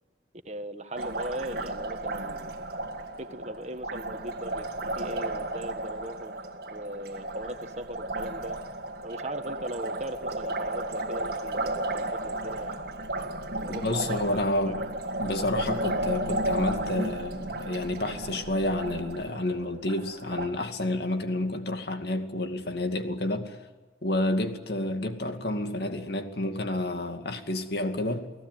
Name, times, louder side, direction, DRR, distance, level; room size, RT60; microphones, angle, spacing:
voice 1, 0.4-2.7 3.2-4.6 5.0-6.3 6.7-8.6 9.0-12.9 13.6-14.8, right 1 dB, 35° right, 1.6 m, -39 dB
Liquid, 1.0-20.5, right 1 dB, 55° right, 1.9 m, -33 dB
voice 2, 13.7-14.8 15.2-23.6 24.0-28.3, left 1 dB, 60° left, 2.4 m, -30 dB
30.0 x 18.0 x 9.5 m
head